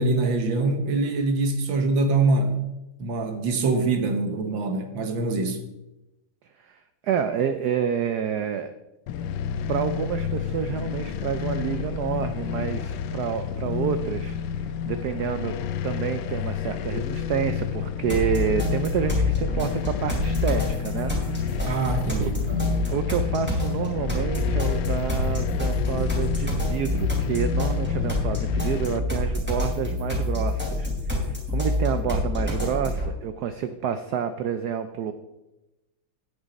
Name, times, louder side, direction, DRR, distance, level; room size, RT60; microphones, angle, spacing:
voice 1, 0.0-2.6 3.0-5.6 21.7-22.7, right 3 dB, 65° right, 6 dB, 1.8 m, -24 dB
voice 2, 7.0-8.7 9.7-15.6 15.8-21.8 22.2-22.3 22.9-30.9 31.2-35.1, right 8 dB, 85° right, 9 dB, 0.8 m, -29 dB
sound 1, 9.1-29.0, left 8 dB, 75° left, 1.0 m, -30 dB
sound 2, 18.1-33.1, left 2 dB, 5° right, 2.7 m, -27 dB
10.0 x 8.9 x 4.1 m, 0.97 s
omnidirectional pair, 2.4 m